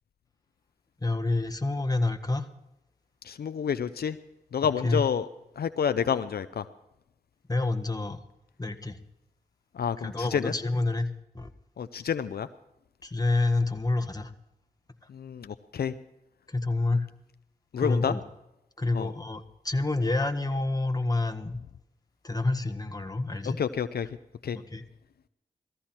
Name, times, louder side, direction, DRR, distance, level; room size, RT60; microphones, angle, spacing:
voice 1, 1.0-2.5 4.6-5.0 7.5-8.2 8.6-9.0 10.0-11.5 13.0-14.3 16.5-17.1 17.8-18.2 18.8-21.6 22.2-23.6 24.5-24.8, left 2 dB, 25° left, 7 dB, 1.6 m, -28 dB
voice 2, 3.3-4.2 4.5-5.3 5.6-6.6 9.8-10.5 11.8-12.5 15.1-15.9 17.7-18.1 18.9-19.1 23.6-24.1 24.4-24.6, left 7 dB, 80° left, 11 dB, 0.6 m, -29 dB
17.5 x 14.5 x 4.4 m, 0.89 s
cardioid pair, 50°, 16 cm